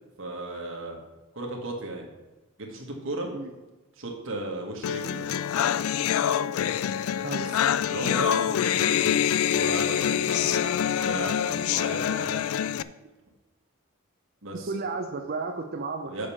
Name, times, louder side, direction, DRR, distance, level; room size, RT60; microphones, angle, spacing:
voice 1, 0.2-1.0 1.3-2.1 2.6-3.3 4.0-5.3 7.4-12.4 14.4-14.7 16.1-16.3, right 2 dB, 60° right, 0 dB, 1.5 m, -35 dB
sound 1, 4.8-12.8, left 9 dB, 75° left, 0.3 m, -25 dB
voice 2, 14.7-16.2, right 3 dB, 45° right, 4 dB, 0.6 m, -33 dB
6.7 x 5.2 x 7.0 m, 1.1 s
head